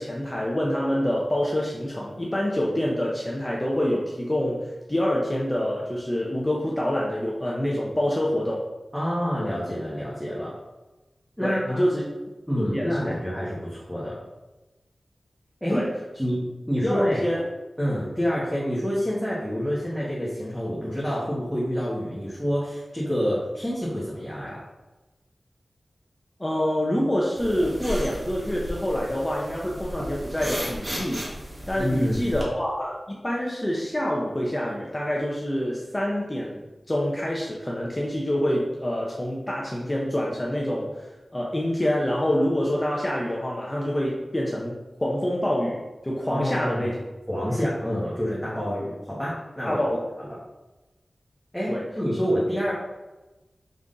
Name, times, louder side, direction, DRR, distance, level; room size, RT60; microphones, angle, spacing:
voice 1, 0.0-8.7 11.4-12.0 12.6-13.1 15.7-15.9 16.8-17.4 26.4-31.2 31.7-47.0 49.7-50.0 51.7-51.8, equal, 25° left, -3 dB, 0.7 m, -26 dB
voice 2, 8.9-10.5 11.4-11.8 12.5-14.2 15.6-15.9 16.2-17.2 17.8-24.6 31.8-32.2 46.3-46.9 47.3-49.8 50.2-50.4 51.5-52.7, equal, 5° left, -7 dB, 1.2 m, -27 dB
sound 1, 27.4-32.4, equal, 35° right, 1.3 m, -34 dB
5.2 x 3.5 x 2.5 m, 1.1 s
cardioid pair, 45°, 0 cm